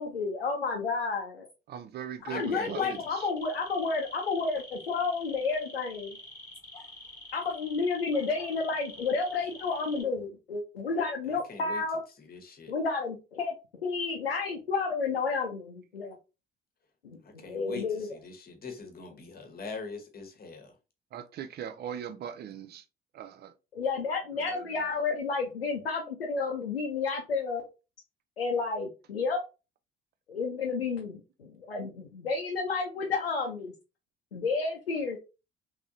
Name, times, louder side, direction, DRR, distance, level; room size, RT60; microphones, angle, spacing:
voice 1, 0.0-1.5 2.3-6.2 7.3-12.0 12.7-13.5 13.8-16.2 17.0-18.1 23.7-27.6 28.4-29.4 30.3-33.7 34.3-35.2, left 4 dB, 85° left, 0.6 m, -31 dB
voice 2, 1.7-3.3 21.1-22.8 23.1-23.5 24.3-24.9, right 9 dB, 35° right, 0.5 m, -40 dB
sound 1, 2.2-10.0, left 2 dB, 10° left, 1.3 m, -47 dB
voice 3, 2.3-2.9 11.3-11.8 12.2-12.7 17.2-20.7, left 4 dB, 30° left, 1.1 m, -42 dB
3.6 x 3.2 x 2.6 m
figure-of-eight pair, 50°, 30 cm